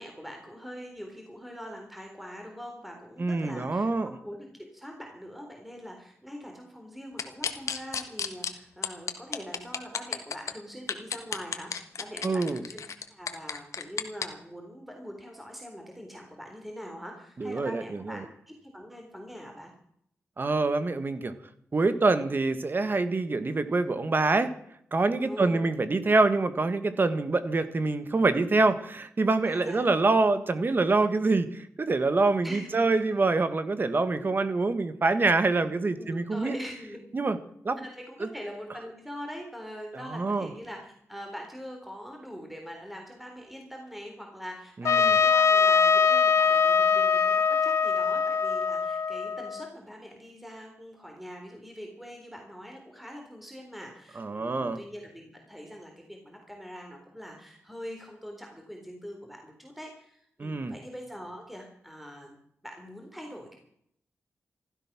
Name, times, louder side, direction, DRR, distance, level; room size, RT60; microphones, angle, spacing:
voice 1, 0.0-12.8 13.1-19.7 25.2-25.7 29.4-29.9 32.4-32.9 36.0-37.0 37.8-62.4 62.6-63.6, equal, ahead, 2 dB, 3.8 m, -43 dB
voice 2, 3.2-4.1 12.2-12.6 17.4-18.2 20.4-21.3 21.7-24.5 24.9-36.5 37.1-37.4 37.6-37.8 38.2-38.3 40.1-40.5 44.8-45.2 54.1-54.8 60.4-60.7, right 3 dB, 40° right, 11 dB, 1.6 m, -25 dB
sound 1, 7.2-8.5 8.8-10.5 10.9-14.3, left 7 dB, 90° left, 1.5 m, -32 dB
Trumpet, 44.9-49.7, left 6 dB, 70° left, 1.0 m, -22 dB
16.0 x 13.5 x 6.2 m, 0.68 s
wide cardioid pair, 95°, 5 cm